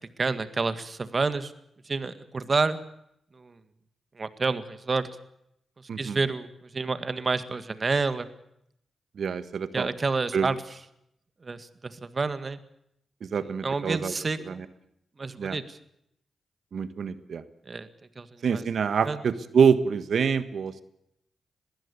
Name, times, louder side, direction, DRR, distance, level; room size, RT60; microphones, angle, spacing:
voice 1, 0.2-1.5 1.9-2.8 3.3-3.6 4.2-5.1 5.8-8.3 9.7-10.6 11.4-12.6 13.6-14.6 15.2-15.8 17.7-17.9 18.2-18.6 19.0-19.2, right 4 dB, 45° right, 12 dB, 1.8 m, -29 dB
voice 2, 9.2-9.9 10.3-10.5 13.2-14.1 14.5-14.6 15.4-15.6 16.7-17.4 18.4-20.8, right 6 dB, 65° right, 13 dB, 1.4 m, -26 dB
21.5 x 15.5 x 8.4 m, 0.76 s
supercardioid pair, 45°, 0 cm